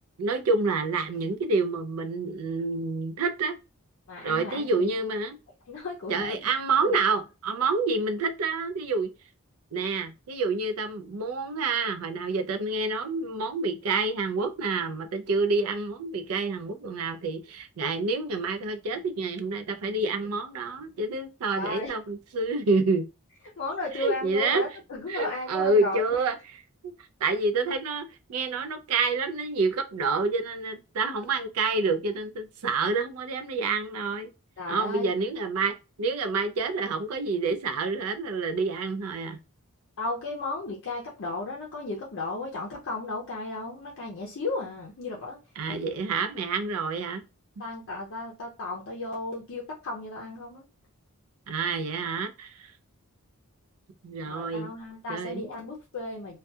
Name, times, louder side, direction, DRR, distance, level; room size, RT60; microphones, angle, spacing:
voice 1, 0.2-3.6 4.2-5.4 6.1-9.1 9.7-23.1 23.9-24.6 25.1-26.4 26.8-26.9 27.2-34.3 34.7-39.4 45.6-47.2 51.5-52.7 54.0-54.7 55.1-55.4, right 3 dB, 85° right, 0.4 m, -28 dB
voice 2, 4.1-5.0 5.7-6.5 6.7-7.0 21.5-21.9 23.6-26.2 34.6-35.1 40.0-45.4 45.7-45.8 47.6-50.6 54.3-56.4, left 2 dB, 60° left, 0.5 m, -35 dB
2.7 x 2.2 x 2.2 m
head